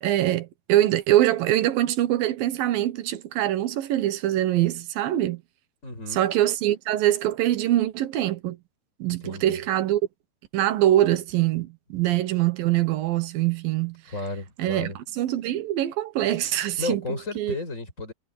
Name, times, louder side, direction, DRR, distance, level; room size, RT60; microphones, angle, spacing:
voice 1, 0.0-5.4 6.1-8.6 9.0-10.0 10.5-14.0 14.6-17.6, right 13 dB, 70° right, 2.8 m, -24 dB
voice 2, 5.8-6.2 9.2-9.6 14.1-15.0 16.8-18.1, left 3 dB, 20° left, 6.1 m, -33 dB
omnidirectional pair, 4.5 m